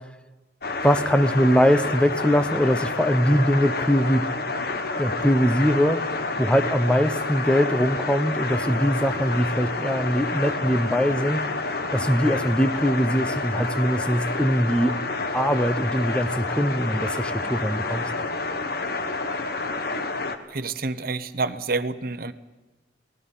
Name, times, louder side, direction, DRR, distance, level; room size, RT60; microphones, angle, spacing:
sound 1, 0.6-20.4, left 3 dB, 55° left, 1.5 m, -29 dB
voice 1, 0.8-4.2 5.0-6.0 6.4-11.4 11.9-14.9 15.3-18.1, equal, 5° left, 11 dB, 0.9 m, -22 dB
voice 2, 20.5-22.3, right 3 dB, 50° right, 10 dB, 1.0 m, -28 dB
30.0 x 19.0 x 5.8 m, 1.2 s
head